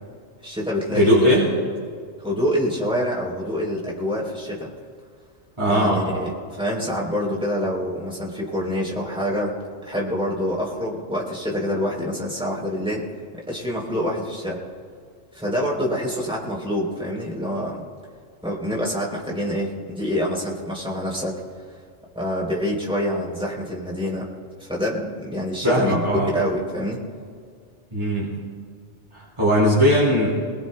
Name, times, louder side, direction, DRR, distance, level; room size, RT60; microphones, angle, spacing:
voice 1, 0.4-1.2 2.2-4.7 5.7-9.5 9.9-13.1 13.5-14.6 15.3-17.9 18.4-21.4 22.2-24.3 24.6-26.0 26.3-27.0, equal, 5° right, -4 dB, 3.5 m, -26 dB
voice 2, 0.9-1.5 5.6-6.0 25.6-26.3 27.9-28.4 29.1-30.3, equal, 25° right, -8 dB, 3.4 m, -19 dB
23.0 x 20.5 x 2.3 m, 2.1 s
omnidirectional pair, 1.2 m